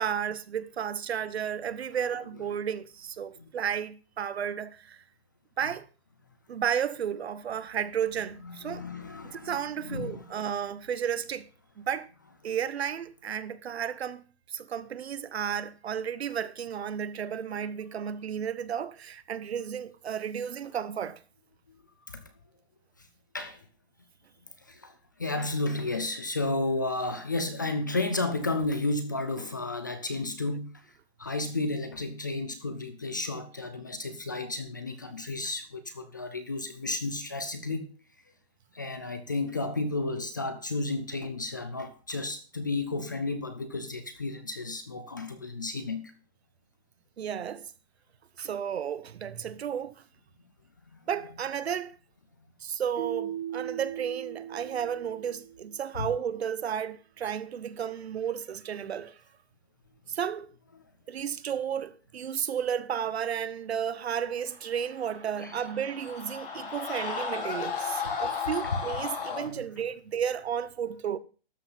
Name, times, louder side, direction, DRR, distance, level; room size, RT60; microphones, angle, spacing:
voice 1, 0.0-5.0 5.6-5.9 6.5-8.8 9.3-11.5 11.8-12.1 12.4-21.2 47.2-47.7 48.4-50.0 51.1-52.0 52.6-59.2 60.1-60.5 61.1-71.2, right 8 dB, 75° right, 1.1 m, -33 dB
voice 2, 8.4-10.2 22.1-22.2 23.3-23.6 24.7-24.9 25.2-30.7 31.2-37.9 38.7-46.1 56.0-56.1 68.0-68.1 68.6-68.8, left 2 dB, 20° left, 0.4 m, -32 dB
Keyboard (musical), 53.0-55.8, right 10 dB, 60° right, 3.8 m, -38 dB
Screaming, 65.0-69.5, left 6 dB, 55° left, 3.3 m, -34 dB
12.5 x 5.8 x 5.5 m
hypercardioid pair, 170°, 32 cm